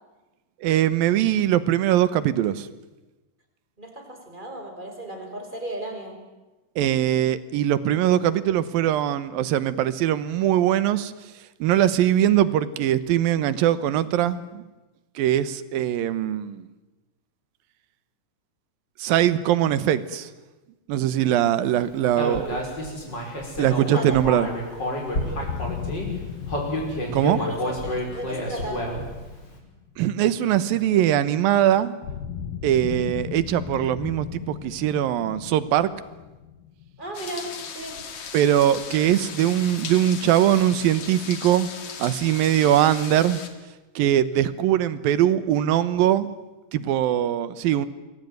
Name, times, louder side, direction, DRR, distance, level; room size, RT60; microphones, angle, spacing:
voice 1, 0.6-2.7 6.8-11.1 11.6-14.6 15.2-16.7 19.0-20.3 20.9-22.5 23.6-24.5 27.1-27.4 30.0-31.9 32.6-35.9 38.3-41.7 42.0-43.4 44.0-46.3 46.7-47.9, right 11 dB, 80° right, 15 dB, 2.9 m, -21 dB
voice 2, 3.8-6.2 23.6-24.2 27.4-28.9 37.0-38.0, right 1 dB, 15° right, 4 dB, 5.2 m, -35 dB
Human voice, 22.2-26.1 26.5-29.2, equal, 30° left, 6.3 m, -29 dB
sound 1, 25.4-30.4 32.0-37.7, left 8 dB, 70° left, 3.3 m, -37 dB
sound 2, 37.1-43.5, left 6 dB, 55° left, 3.4 m, -37 dB
27.5 x 22.0 x 9.4 m, 1.1 s
omnidirectional pair, 4.1 m